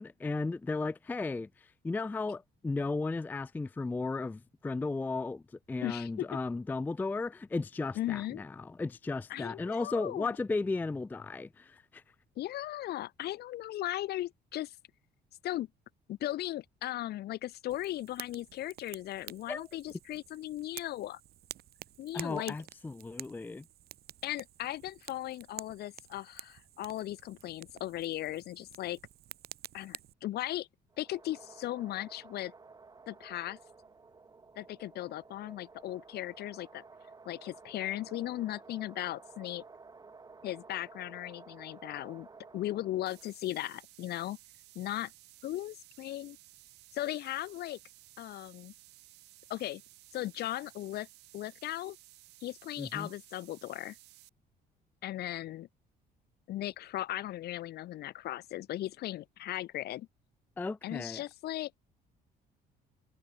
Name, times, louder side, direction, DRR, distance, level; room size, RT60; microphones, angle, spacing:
voice 1, 0.0-1.5 1.8-5.4 5.7-12.0 19.5-19.7 22.1-23.6 52.8-53.1 60.6-61.2, left 3 dB, 10° left, 0.4 m, -35 dB
voice 2, 5.8-6.4 7.9-8.4 9.3-10.4 12.4-14.7 15.4-15.7 16.1-21.2 22.0-22.5 24.2-29.0 29.7-30.7 31.0-32.5 33.1-33.6 34.5-36.8 37.2-39.6 40.4-42.3 42.5-44.4 44.7-45.1 45.4-46.4 46.9-47.8 48.2-48.7 49.5-49.8 50.1-51.1 51.3-52.0 52.4-54.0 55.0-55.7 56.5-60.1 60.8-61.8, left 14 dB, 70° left, 3.4 m, -37 dB
Fire, 17.7-30.1, right 13 dB, 65° right, 2.2 m, -50 dB
sound 1, 30.9-43.4, right 4 dB, 20° right, 2.8 m, -54 dB
sound 2, 43.1-54.3, right 19 dB, 85° right, 4.3 m, -57 dB
cardioid pair, 110°, 17 cm